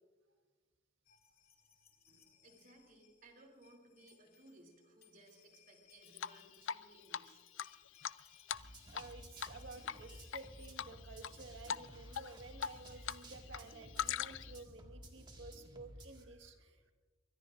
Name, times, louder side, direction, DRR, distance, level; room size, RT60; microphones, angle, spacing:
sound 1, 1.0-11.8 12.9-13.0 13.2-13.3, left 8 dB, 50° left, 2.6 m, -69 dB
voice 1, 2.1-7.4, right 1 dB, 45° right, 2 dB, 3.1 m, -62 dB
Drip, 6.2-6.8 7.1-7.2 7.6-9.1 9.4-9.6 9.9-10.4 10.8-11.3 11.7-11.9 12.1-13.2 13.5-14.6, left 8 dB, 70° left, 0.4 m, -40 dB
sound 2, 8.5-16.2, right 1 dB, 25° right, 1.9 m, -54 dB
voice 2, 8.9-16.9, right 3 dB, 65° right, 5 dB, 1.7 m, -53 dB
23.5 x 21.0 x 2.6 m, 1.4 s
head